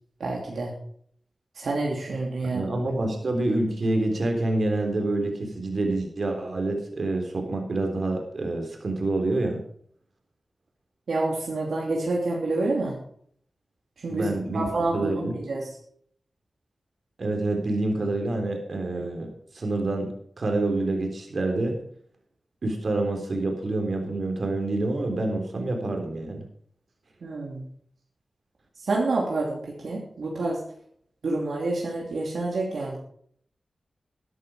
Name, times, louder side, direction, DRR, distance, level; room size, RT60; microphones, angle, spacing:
voice 1, 0.2-0.7 1.5-2.6 11.1-13.0 14.0-14.3 14.5-15.7 27.2-27.6 28.8-30.6 31.2-33.0, right 2 dB, 85° right, -2 dB, 2.8 m, -28 dB
voice 2, 2.5-9.6 14.1-14.7 14.9-15.4 17.2-21.7 22.6-26.4, right 2 dB, 65° right, 3 dB, 3.6 m, -27 dB
12.5 x 11.0 x 5.0 m, 0.62 s
cardioid pair, 55°, 0 cm